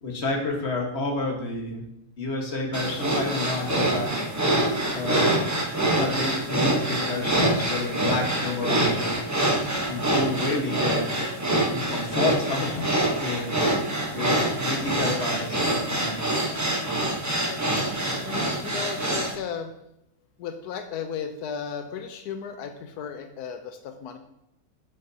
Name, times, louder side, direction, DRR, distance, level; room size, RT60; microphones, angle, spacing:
voice 1, 0.0-1.8 2.2-4.1 4.9-5.3 5.9-9.2 9.9-11.1 11.7-13.6 14.1-16.4, left 2 dB, 45° left, 1 dB, 1.7 m, -30 dB
sound 1, 2.7-19.3, right 1 dB, 15° right, 0.9 m, -25 dB
voice 2, 18.3-19.7 20.4-24.2, left 7 dB, 90° left, 7 dB, 1.2 m, -35 dB
8.9 x 7.4 x 2.8 m, 0.83 s
omnidirectional pair, 1.6 m